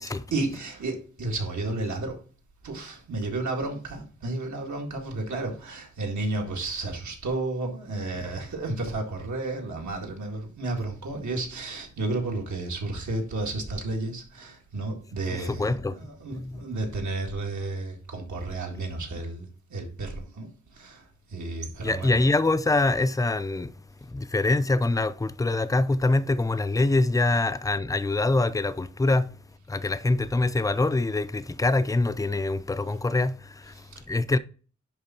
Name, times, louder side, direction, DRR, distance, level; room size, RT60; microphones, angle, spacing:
voice 1, 0.3-2.2 2.6-21.0 21.3-22.2 33.7-34.0, right 2 dB, 80° right, 2.1 m, -32 dB
voice 2, 15.3-16.0 16.3-16.6 21.8-23.7 24.1-29.3 29.7-33.7 34.1-34.4, left 2 dB, 10° left, 0.4 m, -24 dB
10.5 x 3.6 x 4.3 m
wide cardioid pair, 170°, 29 cm